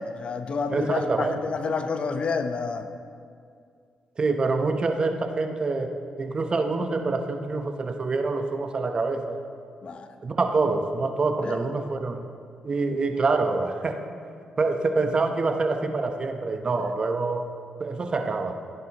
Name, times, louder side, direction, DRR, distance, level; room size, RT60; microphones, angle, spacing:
voice 1, 0.0-2.9 9.8-10.1 11.4-11.6 16.8-16.9, left 4 dB, 55° left, 8 dB, 0.8 m, -29 dB
voice 2, 0.7-1.4 4.2-9.4 10.2-12.2 12.6-14.0 14.6-17.5 17.8-18.5, right 3 dB, 45° right, 6 dB, 0.9 m, -26 dB
15.0 x 10.0 x 3.0 m, 2.2 s
supercardioid pair, 60°, 2 cm